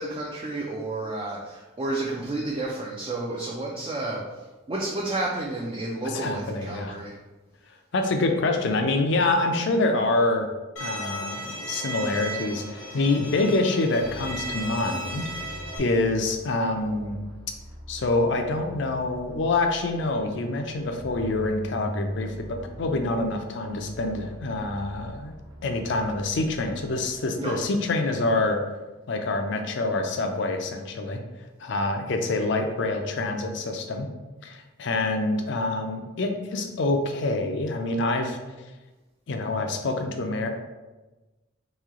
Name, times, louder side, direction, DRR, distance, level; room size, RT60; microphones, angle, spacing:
voice 1, 0.0-7.2 27.4-27.6, right 2 dB, 25° right, -3 dB, 0.4 m, -31 dB
voice 2, 6.0-7.0 7.9-10.5 10.8-17.2 17.9-25.3 25.6-28.6 29.1-31.2 31.6-34.1 34.4-38.4 39.3-40.5, left 2 dB, 65° left, 5 dB, 0.5 m, -26 dB
Bowed string instrument, 10.8-15.8, right 1 dB, 85° left, 0.8 m, -35 dB
sound 1, 13.9-28.0, equal, 75° right, 0.7 m, -45 dB
3.1 x 2.7 x 3.6 m, 1.1 s
head